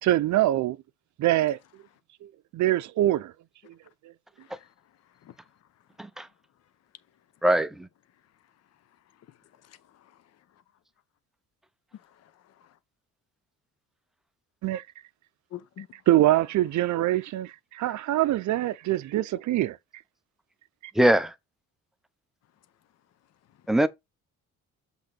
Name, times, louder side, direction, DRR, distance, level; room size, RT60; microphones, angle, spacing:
voice 1, 0.0-0.8 1.2-1.6 2.2-3.3 3.7-3.8 14.6-14.8 16.1-19.8, right 15 dB, 60° right, 0.6 m, -24 dB
voice 2, 4.4-4.7 5.2-5.4 9.3-10.2 11.9-12.8 15.5-15.9, left 11 dB, 50° left, 0.8 m, -48 dB
voice 3, 7.4-7.9 21.0-21.3 23.7-23.9, right 1 dB, ahead, 0.5 m, -21 dB
7.8 x 3.7 x 4.0 m
cardioid pair, 155°, 33 cm